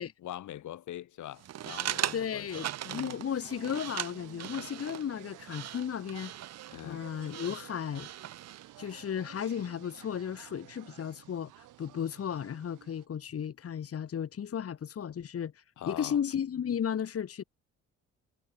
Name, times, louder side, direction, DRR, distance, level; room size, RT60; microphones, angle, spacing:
voice 1, 0.2-3.2 6.7-7.1 15.8-16.2, left 12 dB, 75° left, 2.7 m, -43 dB
sound 1, 1.4-8.7, right 12 dB, 60° right, 0.9 m, -39 dB
sound 2, 1.5-13.1, right 15 dB, 85° right, 3.6 m, -53 dB
voice 2, 2.1-6.3 6.8-8.1 8.8-17.4, left 8 dB, 50° left, 2.2 m, -34 dB
cardioid pair, 90°, 30 cm